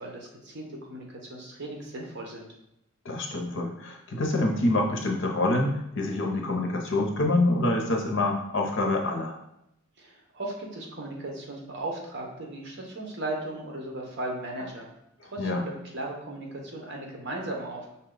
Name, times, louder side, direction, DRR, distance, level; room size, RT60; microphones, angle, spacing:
voice 1, 0.0-2.5 10.0-14.9 15.2-18.0, right 2 dB, 55° right, 0 dB, 0.9 m, -37 dB
voice 2, 3.0-9.4 15.4-15.6, left 2 dB, 60° left, 1 dB, 0.7 m, -26 dB
5.5 x 2.2 x 3.8 m, 0.82 s
head